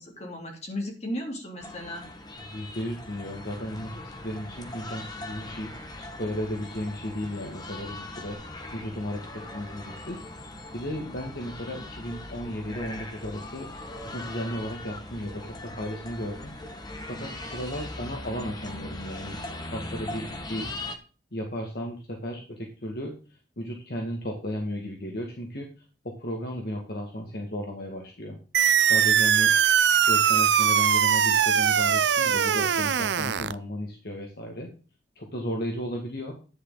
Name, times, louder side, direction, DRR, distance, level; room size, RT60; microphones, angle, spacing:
voice 1, 0.0-2.1, left 1 dB, 40° left, 0 dB, 3.5 m, -35 dB
sound 1, 1.6-21.0, left 2 dB, 25° left, 1.3 m, -40 dB
voice 2, 2.5-8.4 8.7-10.5 10.7-13.7 14.1-16.5 17.1-19.4 19.7-20.7 21.3-23.1 23.6-25.7 26.0-28.4 28.9-29.5 30.1-34.7 35.2-36.3, equal, 60° left, 1 dB, 2.0 m, -34 dB
sound 2, 28.5-33.5, right 8 dB, 75° right, 0.5 m, -21 dB
11.0 x 9.7 x 4.0 m, 0.36 s
head